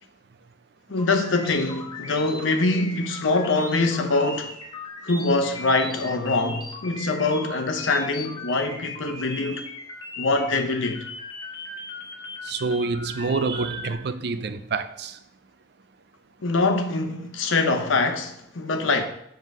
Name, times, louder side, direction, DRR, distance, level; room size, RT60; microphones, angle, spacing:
voice 1, 0.9-4.6 5.0-9.6 10.2-11.1 16.4-19.0, left 3 dB, 85° left, 0.9 m, -24 dB
sound 1, 1.0-13.9, left 3 dB, 25° left, 1.1 m, -38 dB
voice 2, 12.4-15.2, right 4 dB, 55° right, 0.5 m, -27 dB
7.2 x 3.9 x 6.1 m
head